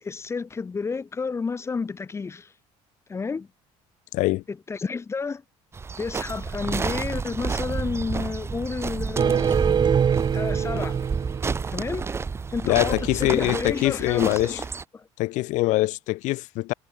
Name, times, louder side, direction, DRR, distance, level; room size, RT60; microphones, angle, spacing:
voice 1, 0.0-2.5 3.1-3.5 4.5-5.4 6.0-9.6 10.3-11.0 11.7-12.1 12.5-14.7 14.9-15.1, left 4 dB, 20° left, 0.9 m, -31 dB
voice 2, 4.1-4.4 12.6-14.6 15.2-16.7, left 19 dB, 70° left, 2.5 m, -23 dB
sound 1, 5.7-14.8, right 5 dB, 20° right, 0.6 m, -30 dB
sound 2, 9.2-12.2, right 7 dB, 35° right, 1.8 m, -24 dB
cardioid pair, 110°, 13 cm